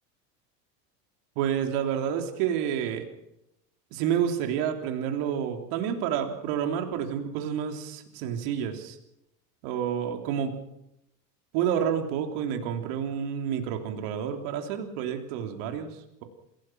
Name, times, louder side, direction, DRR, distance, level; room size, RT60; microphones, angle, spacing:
voice 1, 1.4-3.0 3.9-9.0 9.6-10.6 11.5-16.2, right 8 dB, 65° right, 4 dB, 3.4 m, -29 dB
27.5 x 17.5 x 6.0 m, 0.84 s
hypercardioid pair, 80°, 48 cm